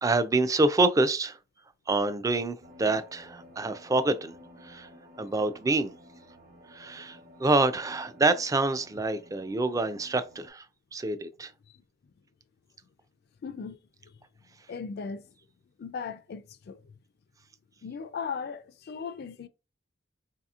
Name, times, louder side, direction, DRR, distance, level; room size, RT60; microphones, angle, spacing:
voice 1, 0.0-1.4 1.9-4.3 4.6-4.9 5.2-5.9 6.7-10.6 10.9-11.5, right 2 dB, 20° right, 0.3 m, -26 dB
sound 1, 2.6-10.5, equal, 60° right, 1.0 m, -53 dB
voice 2, 13.4-13.8 14.0-14.2 14.7-15.3 15.8-17.0 17.8-19.5, left 5 dB, 55° left, 0.4 m, -38 dB
4.0 x 2.8 x 2.4 m
head